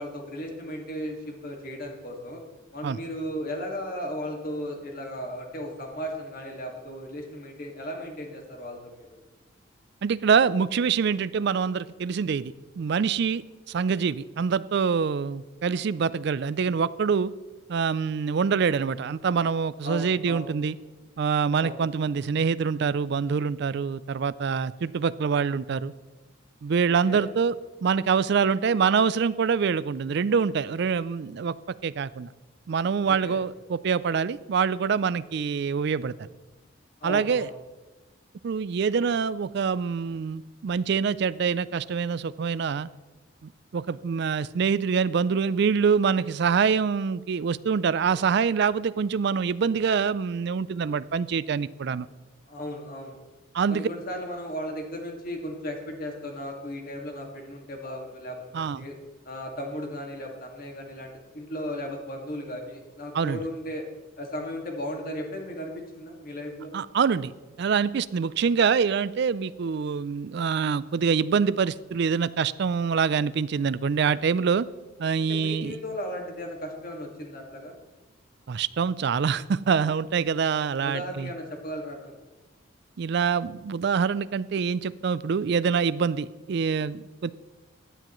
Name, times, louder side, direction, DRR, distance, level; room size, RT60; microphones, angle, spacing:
voice 1, 0.0-2.4 2.7-9.2 19.8-20.5 21.6-21.8 26.9-27.2 33.1-33.4 37.0-37.5 52.5-53.2 53.7-58.9 59.2-63.8 64.2-66.7 75.2-77.7 80.8-82.1, equal, 45° left, 1 dB, 1.9 m, -36 dB
voice 2, 10.0-13.4 13.7-17.3 17.7-20.8 21.2-25.9 26.6-27.5 27.8-31.6 31.8-32.3 32.7-36.1 37.0-37.5 38.4-42.9 43.4-52.1 53.5-53.9 58.5-58.8 63.1-63.4 66.7-67.3 67.6-74.7 75.0-75.8 78.5-81.3 83.0-87.3, right 6 dB, 55° right, 17 dB, 0.3 m, -25 dB
16.0 x 9.9 x 3.1 m, 1.2 s
head